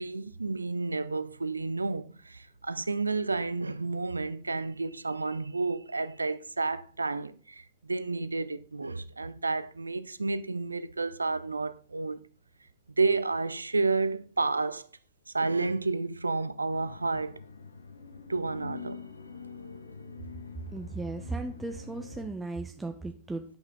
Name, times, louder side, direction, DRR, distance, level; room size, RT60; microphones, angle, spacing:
voice 1, 0.0-12.3 13.0-14.9 15.3-17.4 18.3-19.0, right 3 dB, 80° right, 0.4 m, -31 dB
sound 1, 16.7-22.3, left 5 dB, 75° left, 0.8 m, -45 dB
voice 2, 20.7-23.5, right 3 dB, 10° right, 0.7 m, -36 dB
9.6 x 5.6 x 3.8 m
figure-of-eight pair, 90°, 0 cm